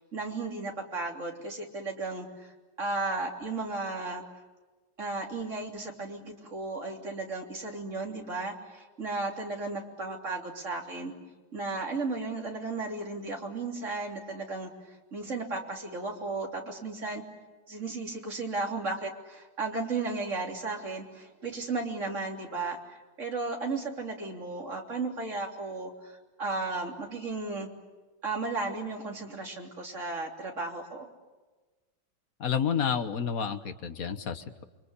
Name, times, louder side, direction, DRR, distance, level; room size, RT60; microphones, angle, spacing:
voice 1, 0.0-2.5 2.8-4.2 5.0-11.1 11.5-17.2 17.7-27.7 28.2-31.1, right 3 dB, 40° right, 1 dB, 3.7 m, -34 dB
voice 2, 32.4-34.6, left 7 dB, 55° left, 9 dB, 1.6 m, -30 dB
29.5 x 23.5 x 8.4 m, 1.2 s
omnidirectional pair, 2.0 m